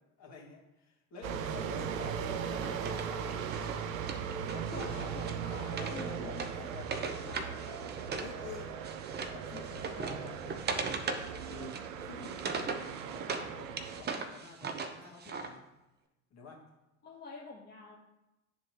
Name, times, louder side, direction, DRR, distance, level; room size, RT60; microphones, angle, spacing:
voice 1, 0.0-4.2 4.5-9.0 9.3-10.6 11.4-15.7 16.3-16.7, left 3 dB, 40° left, -1 dB, 2.0 m, -49 dB
sound 1, 1.2-14.0, right 7 dB, 75° right, 0.6 m, -38 dB
Wood, 2.3-8.3 8.6-13.5 13.8-15.5, right 4 dB, 25° right, 0.8 m, -39 dB
voice 2, 4.7-5.4 5.7-6.4 17.0-18.0, left 3 dB, 25° left, -3 dB, 1.0 m, -46 dB
11.0 x 3.7 x 3.0 m, 0.95 s
hypercardioid pair, 75°, 40 cm